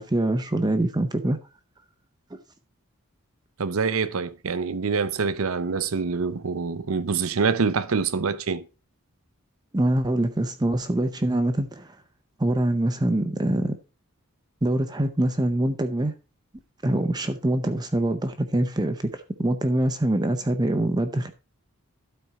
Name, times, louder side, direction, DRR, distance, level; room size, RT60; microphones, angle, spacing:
voice 1, 0.0-1.4 9.7-12.0 12.4-13.8 14.6-16.1 16.8-21.3, right 1 dB, 20° right, 0.6 m, -24 dB
voice 2, 3.6-8.6, right 5 dB, 75° right, 0.7 m, -25 dB
12.5 x 4.4 x 4.7 m
head